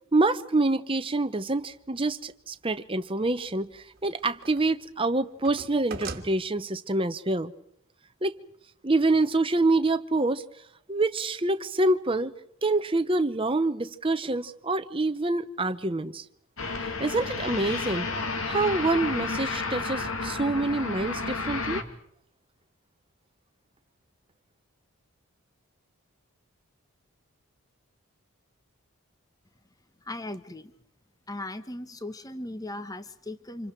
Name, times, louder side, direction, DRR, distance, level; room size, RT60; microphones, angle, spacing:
voice 1, 0.1-7.5 8.2-8.3 8.8-10.4 10.9-12.3 12.6-16.2 17.0-18.1 18.4-21.8, right 2 dB, 25° right, 0.9 m, -26 dB
sound 1, 1.7-1.8 3.5-4.8 5.1-6.3, right 4 dB, 45° right, 1.7 m, -40 dB
sound 2, 16.6-21.8, left 3 dB, 65° left, 2.1 m, -31 dB
voice 2, 30.0-30.7 31.3-33.7, left 1 dB, 15° left, 1.0 m, -37 dB
30.0 x 27.0 x 4.6 m
head